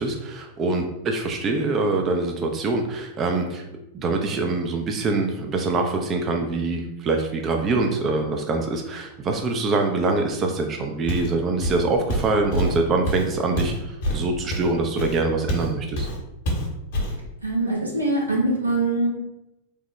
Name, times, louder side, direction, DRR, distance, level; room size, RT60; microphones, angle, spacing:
voice 1, 0.0-3.6 3.9-16.1, right 3 dB, 30° right, 3 dB, 0.3 m, -24 dB
Walk footsteps, 11.1-11.4 11.6-15.7 16.0-16.2 16.5-17.2, equal, 55° left, 0.8 m, -26 dB
voice 2, 17.4-19.1, right 2 dB, 85° right, -4 dB, 0.9 m, -23 dB
3.1 x 2.1 x 3.0 m, 0.92 s
figure-of-eight pair, 90°, 0 cm